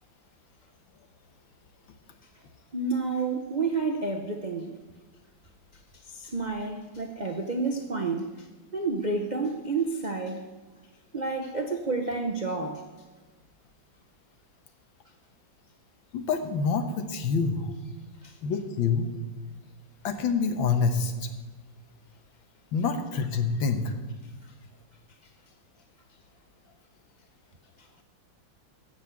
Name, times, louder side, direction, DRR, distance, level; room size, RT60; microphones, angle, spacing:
voice 1, 2.7-4.7 5.9-8.5 8.7-10.5 11.1-12.8 18.2-18.4 24.4-24.5 27.8-27.9, right 3 dB, 60° right, 3 dB, 0.4 m, -30 dB
voice 2, 16.1-17.6 18.4-19.1 20.0-21.1 22.7-23.8, left 5 dB, 70° left, 8 dB, 1.8 m, -26 dB
15.5 x 6.3 x 8.3 m, 1.3 s
omnidirectional pair, 2.2 m